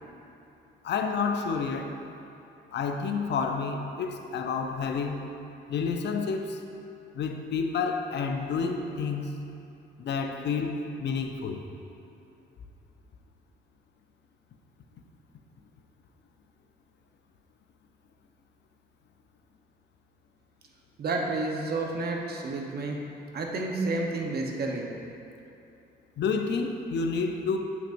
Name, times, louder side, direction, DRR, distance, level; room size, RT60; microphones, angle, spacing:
voice 1, 0.8-2.0 2.7-5.3 5.7-6.6 7.1-9.4 10.0-11.6 26.2-27.6, left 5 dB, 60° left, 4 dB, 0.6 m, -29 dB
voice 2, 21.0-23.0 23.3-24.9, right 2 dB, 50° right, 1 dB, 1.0 m, -30 dB
8.7 x 5.9 x 2.6 m, 2.8 s
cardioid pair, 90°, 20 cm